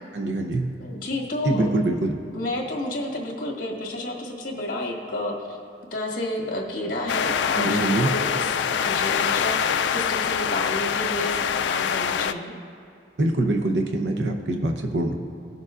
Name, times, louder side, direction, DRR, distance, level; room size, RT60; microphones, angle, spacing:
voice 1, 0.1-0.6 1.4-2.2 7.5-8.1 13.2-15.1, right 2 dB, 75° right, 3 dB, 0.7 m, -24 dB
voice 2, 0.8-1.7 2.3-5.6 5.9-12.5, left 1 dB, 50° left, -1 dB, 1.6 m, -30 dB
sound 1, 7.1-12.3, left 7 dB, 80° left, 0.3 m, -24 dB
19.0 x 6.6 x 2.4 m, 2.5 s
head